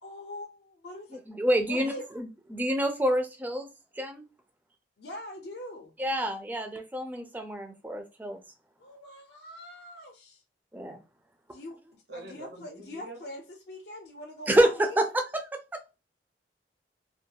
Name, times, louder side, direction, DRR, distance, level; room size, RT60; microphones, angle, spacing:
voice 1, 0.0-1.2 1.7-2.0 5.0-5.9 8.8-10.4 11.5-15.0, left 1 dB, 65° left, 0.5 m, -43 dB
voice 2, 1.1-3.7 3.9-4.3 6.0-8.4 10.7-11.0 14.5-15.9, right 1 dB, 10° right, 0.4 m, -28 dB
voice 3, 12.1-13.2, right 1 dB, 75° right, 0.8 m, -44 dB
2.3 x 2.2 x 2.7 m
head